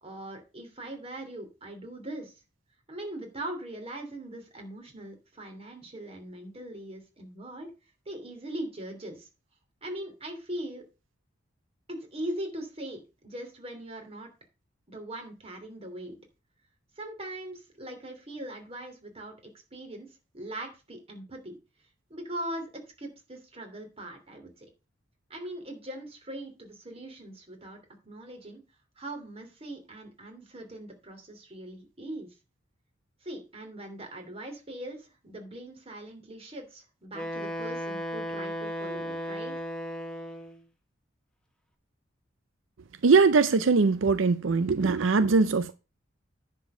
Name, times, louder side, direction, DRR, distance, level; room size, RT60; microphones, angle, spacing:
voice 1, 0.0-2.3 2.9-7.7 8.0-9.3 9.8-10.8 11.9-14.3 14.9-16.2 17.0-20.1 20.3-21.6 22.1-24.7 25.3-28.6 29.0-32.3 33.2-39.5, right 1 dB, 30° right, 3.0 m, -40 dB
Wind instrument woodwind instrument, 37.1-40.6, equal, 5° left, 1.3 m, -35 dB
voice 2, 43.0-45.7, right 4 dB, 80° right, 0.6 m, -21 dB
10.0 x 4.6 x 6.3 m
head